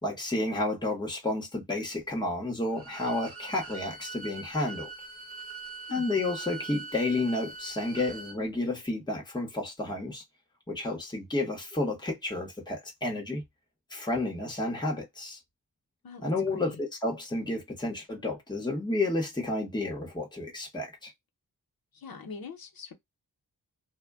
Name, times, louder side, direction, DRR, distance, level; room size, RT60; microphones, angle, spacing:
voice 1, 0.0-4.9 5.9-10.2 10.7-13.4 13.9-15.4 16.2-21.1, left 2 dB, 10° left, 0.9 m, -31 dB
Bowed string instrument, 2.7-8.4, right 4 dB, 40° right, 0.8 m, -43 dB
voice 2, 16.0-16.7 21.9-22.9, left 5 dB, 75° left, 0.8 m, -43 dB
2.2 x 2.1 x 3.4 m
wide cardioid pair, 155°, 36 cm